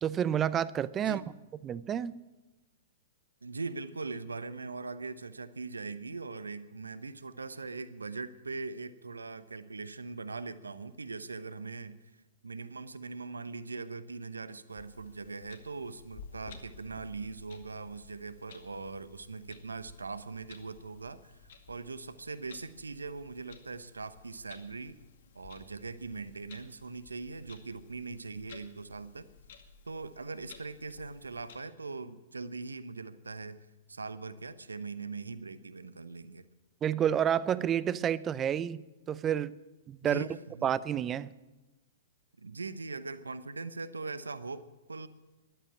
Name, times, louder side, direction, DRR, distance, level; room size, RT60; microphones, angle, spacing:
voice 1, 0.0-1.2 1.6-2.2 36.8-39.5 39.9-40.2 40.6-41.3, right 9 dB, 25° right, 18 dB, 0.5 m, -29 dB
voice 2, 3.4-12.0 12.4-25.0 25.3-29.3 29.9-33.6 33.9-36.5 40.0-40.7 42.4-45.1, right 4 dB, 80° right, 14 dB, 0.9 m, -41 dB
Clock, 14.7-31.6, left 5 dB, 60° left, 2.1 m, -55 dB
13.5 x 12.0 x 8.8 m, 1.1 s
figure-of-eight pair, 110°, 0 cm